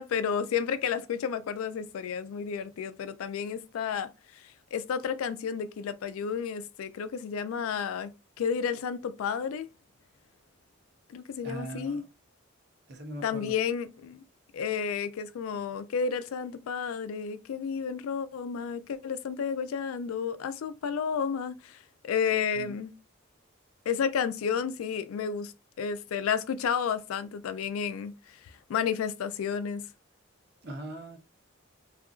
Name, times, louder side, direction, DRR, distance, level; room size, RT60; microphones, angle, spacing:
voice 1, 0.0-8.1 8.4-9.7 11.1-12.0 13.2-14.2 14.5-22.9 23.9-29.9, left 7 dB, 80° left, 0.3 m, -31 dB
voice 2, 11.4-12.1 12.9-13.5 22.5-22.7 30.6-31.2, right 2 dB, 50° right, 0.7 m, -40 dB
2.7 x 2.4 x 2.3 m
head